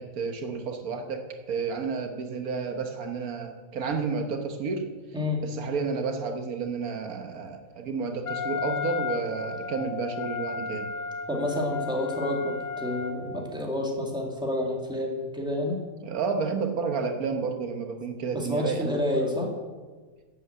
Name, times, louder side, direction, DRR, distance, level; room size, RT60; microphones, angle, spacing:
voice 1, 0.0-4.8 5.4-10.9 16.0-18.9, right 5 dB, 75° right, 5 dB, 1.5 m, -31 dB
Wind instrument woodwind instrument, 8.3-13.5, left 5 dB, 60° left, 1.5 m, -34 dB
voice 2, 11.3-15.8 18.3-19.5, left 1 dB, 5° right, 0 dB, 2.1 m, -29 dB
11.0 x 8.2 x 7.9 m, 1.4 s
omnidirectional pair, 1.5 m